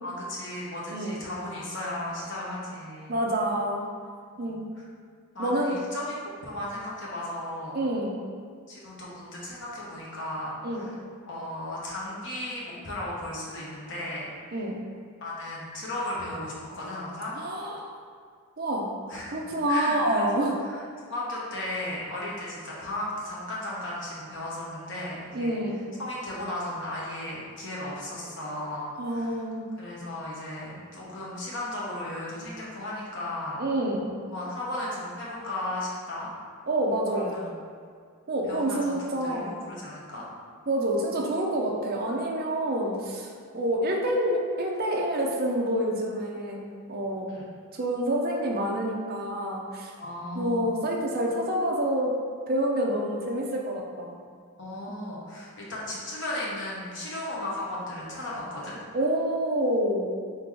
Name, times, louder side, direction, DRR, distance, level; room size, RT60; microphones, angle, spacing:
voice 1, 0.0-3.2 4.3-4.5 5.3-6.2 6.4-7.8 8.7-10.9 11.3-14.3 15.2-17.4 19.1-20.4 21.1-25.6 26.0-29.3 29.8-33.6 34.2-36.3 37.1-37.5 38.5-40.3 47.3-47.4 50.0-50.7 54.6-58.8, left 1 dB, 55° left, -5 dB, 1.1 m, -35 dB
voice 2, 0.9-1.2 3.1-3.9 4.4-4.6 5.4-5.7 7.7-8.2 10.6-10.9 14.5-14.8 17.3-17.9 18.6-18.9 19.3-20.6 25.3-25.8 29.0-29.6 33.6-34.1 36.7-37.3 38.3-39.6 40.7-43.3 43.5-46.6 46.9-47.3 47.7-49.9 50.3-52.1 52.5-54.2 54.9-55.0 58.9-60.1, right 1 dB, 40° right, -1 dB, 0.6 m, -27 dB
3.8 x 3.0 x 4.6 m, 2.1 s
head